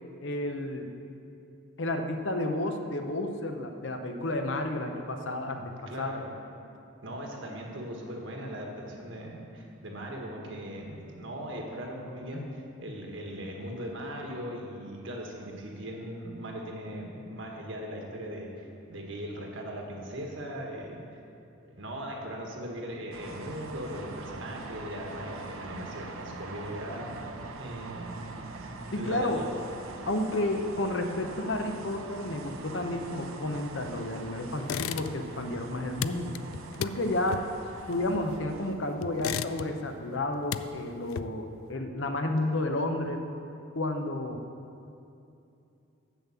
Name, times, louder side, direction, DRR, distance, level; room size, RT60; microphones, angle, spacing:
voice 1, 0.2-0.9 1.8-6.1 12.3-12.5 28.9-29.5 30.0-36.3 36.8-37.4 37.9-43.2 43.7-44.4, left 1 dB, 65° left, 5 dB, 0.8 m, -31 dB
voice 2, 5.9-6.3 7.0-21.0 21.7-27.1 27.6-28.3 28.7-29.5, equal, 65° right, 0 dB, 1.5 m, -39 dB
sound 1, 23.1-38.7, right 3 dB, 90° right, 0.7 m, -43 dB
sound 2, 34.6-35.4 35.7-38.6 39.0-39.9 40.3-41.6, left 9 dB, 80° left, 0.3 m, -36 dB
7.5 x 7.1 x 7.1 m, 2.7 s
head